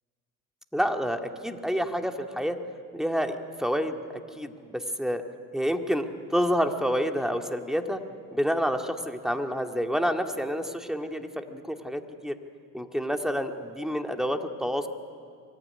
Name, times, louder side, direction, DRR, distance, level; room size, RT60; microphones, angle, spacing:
voice 1, 0.7-2.6 2.9-5.2 5.5-8.0 8.3-12.3 12.7-14.9, equal, ahead, 5 dB, 2.1 m, -28 dB
24.0 x 14.5 x 9.9 m, 2.2 s
hypercardioid pair, 55°, 40 cm